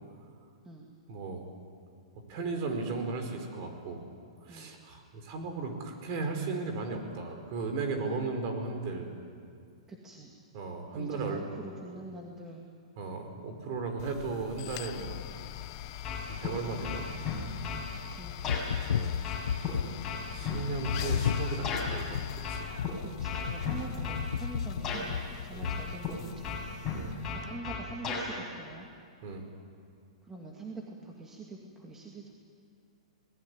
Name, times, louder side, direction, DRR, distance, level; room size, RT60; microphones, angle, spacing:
voice 1, 1.1-1.5 2.3-4.0 4.4-9.1 10.5-11.4 13.0-15.2 16.4-17.1 18.9-19.2 20.3-22.7 25.5-25.7 26.9-27.1 29.2-29.4, right 3 dB, 40° right, 4 dB, 4.9 m, -36 dB
voice 2, 9.9-10.3 10.9-12.6 18.2-18.6 21.1-21.6 23.2-26.6 27.3-28.9 30.2-32.3, right 2 dB, 10° right, -1 dB, 2.2 m, -45 dB
sound 1, 14.0-27.5, left 13 dB, 40° left, 1.0 m, -43 dB
sound 2, 16.0-16.5 16.8-17.9 18.4-18.6 19.2-21.9 22.4-22.9 23.2-24.3 24.8-25.0 25.6-26.1 26.4-28.3, left 5 dB, 15° left, 7.4 m, -35 dB
sound 3, 18.4-20.1 20.9-26.3, left 8 dB, 80° left, 0.7 m, -34 dB
27.5 x 19.5 x 9.8 m, 2.2 s
hypercardioid pair, 155°, 3 cm